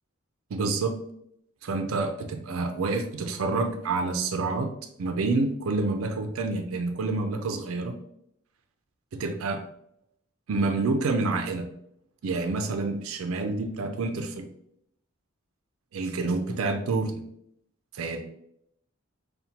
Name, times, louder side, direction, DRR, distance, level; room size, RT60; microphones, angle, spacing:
voice 1, 0.5-1.0 1.6-7.9 9.1-9.6 10.5-11.7 12.2-14.5 15.9-17.1 17.9-18.2, right 3 dB, 85° right, 6 dB, 0.4 m, -28 dB
5.7 x 2.2 x 2.7 m, 0.74 s
head